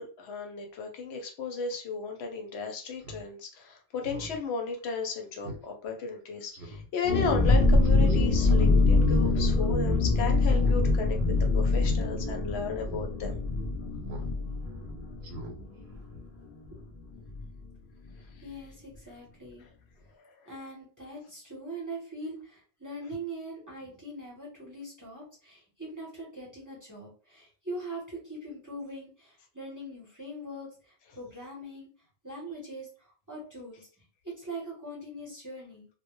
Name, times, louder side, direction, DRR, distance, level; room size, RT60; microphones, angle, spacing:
voice 1, 0.0-11.2 11.5-13.4, left 4 dB, 80° left, 3 dB, 0.9 m, -34 dB
Speech synthesizer, 3.0-3.2 3.6-3.7 4.0-4.4 4.8-4.9 5.4-5.6 6.0-6.1 6.5-6.9 7.8-8.2 9.1-9.5 9.7-9.8 10.4-10.8 11.0-11.3 11.7-12.0 12.4-12.5 12.9-13.1 14.0-14.3 14.6-14.8 15.2-15.5 15.9-16.0, right 1 dB, 80° right, 0.8 m, -42 dB
sound 1, 7.0-16.5 16.7-16.8 17.2-17.4, left 3 dB, 55° left, 0.5 m, -24 dB
voice 2, 18.4-19.6 20.5-31.9 32.2-33.8 34.2-35.9, right 1 dB, 20° right, -4 dB, 0.7 m, -42 dB
2.1 x 2.1 x 2.9 m, 0.41 s
omnidirectional pair, 1.1 m